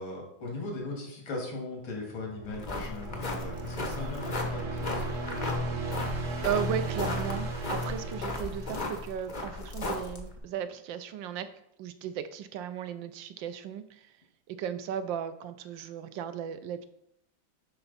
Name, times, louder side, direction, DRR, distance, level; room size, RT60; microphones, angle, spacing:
voice 1, 0.0-5.2, left 2 dB, 85° left, -1 dB, 2.7 m, -38 dB
sound 1, 2.0-9.3, right 1 dB, 50° right, 1.2 m, -36 dB
sound 2, 2.5-10.4, left 2 dB, 40° left, 0.6 m, -36 dB
voice 2, 5.9-11.5 11.8-14.1 14.5-16.8, right 9 dB, 75° right, 11 dB, 1.3 m, -36 dB
11.0 x 4.4 x 4.0 m, 0.74 s
omnidirectional pair, 2.2 m